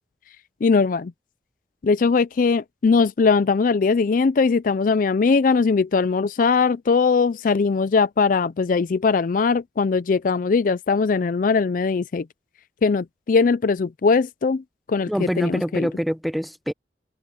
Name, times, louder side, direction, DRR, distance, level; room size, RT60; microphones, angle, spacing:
voice 1, 0.6-1.1 1.8-12.3 12.8-15.9, left 4 dB, 50° left, 0.4 m, -20 dB
voice 2, 15.1-16.7, equal, ahead, 0.7 m, -25 dB
head